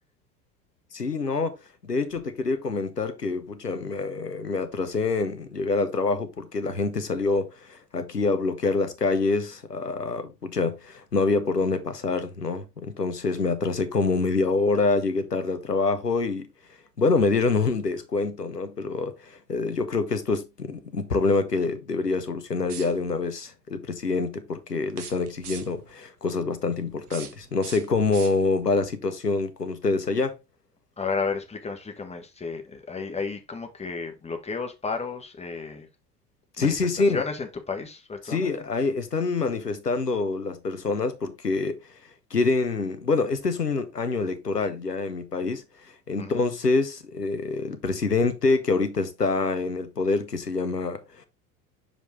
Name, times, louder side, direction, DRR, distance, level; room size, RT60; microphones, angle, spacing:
voice 1, 0.9-1.6 1.8-16.5 17.0-30.4 36.6-37.2 38.2-41.8 42.3-51.3, left 3 dB, 90° left, 1.0 m, -26 dB
sound 1, 22.6-23.3 24.9-25.9 26.9-28.7, right 7 dB, 75° right, 1.2 m, -43 dB
voice 2, 31.0-35.9 36.6-38.5 46.2-46.4, left 4 dB, 15° left, 1.6 m, -32 dB
6.3 x 5.2 x 3.8 m
figure-of-eight pair, 75°, 46 cm